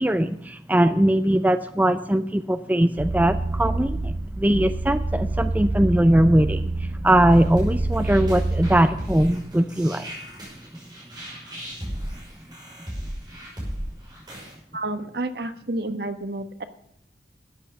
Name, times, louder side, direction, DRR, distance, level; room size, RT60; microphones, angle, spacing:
voice 1, 0.0-6.7 7.0-10.1, right 1 dB, 10° right, 10 dB, 0.5 m, -20 dB
sound 1, 3.0-8.8, right 2 dB, 80° right, 1.3 m, -27 dB
sound 2, 7.3-14.5, equal, 25° right, 5.6 m, -35 dB
voice 2, 14.7-16.6, right 2 dB, 60° right, 9 dB, 1.3 m, -30 dB
13.0 x 9.0 x 7.0 m, 0.74 s
head